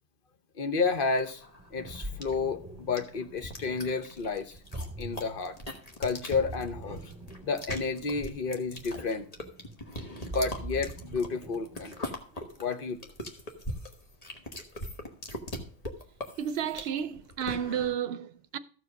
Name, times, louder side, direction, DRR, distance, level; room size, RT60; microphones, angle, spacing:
voice 1, 0.6-1.4 1.7-4.6 5.0-5.6 6.0-7.0 7.4-9.2 10.2-12.1 12.6-13.1, left 4 dB, 55° left, 1.1 m, -31 dB
sound 1, 0.9-17.9, left 1 dB, 35° left, 1.5 m, -41 dB
Ocean, 1.6-12.4, right 2 dB, 15° right, 1.9 m, -44 dB
voice 2, 16.4-18.6, right 9 dB, 65° right, 0.9 m, -32 dB
14.0 x 4.9 x 6.4 m
omnidirectional pair, 1.1 m